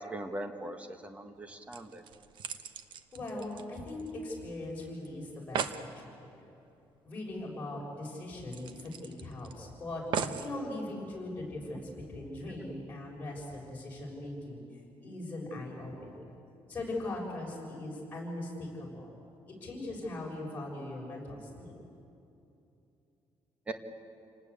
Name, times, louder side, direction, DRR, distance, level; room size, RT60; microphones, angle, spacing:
voice 1, 0.1-2.0 23.7-23.8, right 1 dB, 15° right, 7 dB, 1.4 m, -40 dB
sound 1, 1.4-1.5 1.7-4.4 4.6-4.7 5.0-5.1 5.3-5.9 7.4-7.5 7.8-7.9 8.5-9.5 10.1-10.5 11.3-11.4, right 7 dB, 60° right, 1.1 m, -38 dB
voice 2, 3.1-6.3 7.0-10.0 10.4-14.6 15.0-16.2 16.7-19.1 19.6-21.7, left 2 dB, 20° left, -3 dB, 6.6 m, -40 dB
29.0 x 19.5 x 8.5 m, 2.8 s
cardioid pair, 175°, 9 cm